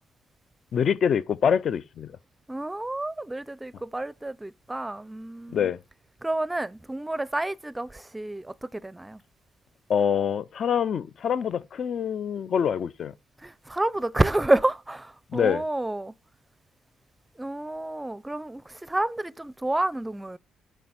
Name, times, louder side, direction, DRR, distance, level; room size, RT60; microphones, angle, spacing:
voice 1, 0.7-2.2 5.5-5.8 9.9-13.1 15.3-15.6, left 8 dB, 55° left, 0.5 m, -25 dB
voice 2, 2.5-5.7 6.2-9.2 13.4-16.1 17.4-20.4, right 2 dB, 10° right, 0.5 m, -29 dB
8.5 x 6.0 x 8.0 m
cardioid pair, 90°, 0 cm